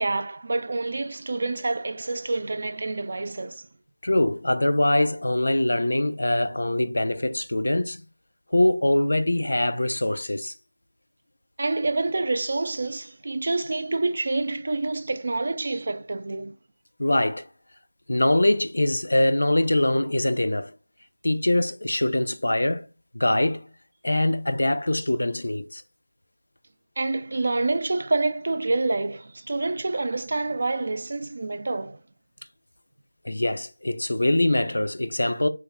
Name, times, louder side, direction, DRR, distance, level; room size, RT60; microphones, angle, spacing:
voice 1, 0.0-3.7 11.6-16.5 27.0-32.0, right 2 dB, 55° right, 0.3 m, -27 dB
voice 2, 4.0-8.0 8.5-10.5 17.0-17.5 18.1-20.7 21.2-22.9 23.1-23.6 24.0-25.8 33.2-35.5, left 1 dB, 90° left, 0.4 m, -23 dB
3.1 x 2.1 x 3.5 m
figure-of-eight pair, 175°, 0 cm